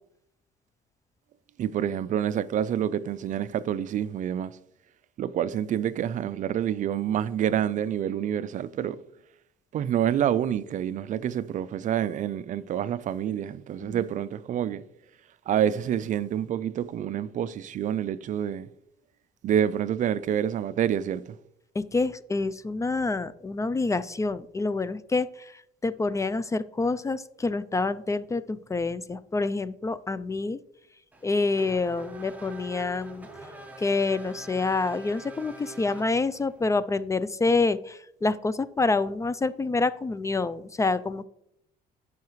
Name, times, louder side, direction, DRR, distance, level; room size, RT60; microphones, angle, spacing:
voice 1, 1.6-4.6 5.2-9.0 9.7-14.8 15.5-18.7 19.4-21.3, right 10 dB, 50° right, 0.4 m, -27 dB
voice 2, 21.8-30.6 31.2-33.3 33.8-41.2, left 3 dB, 20° left, 0.3 m, -27 dB
Race car auto racing / Accelerating revving vroom, 31.1-36.6, right 3 dB, 10° right, 1.2 m, -44 dB
14.5 x 5.7 x 3.1 m
cardioid pair, 110°, 17 cm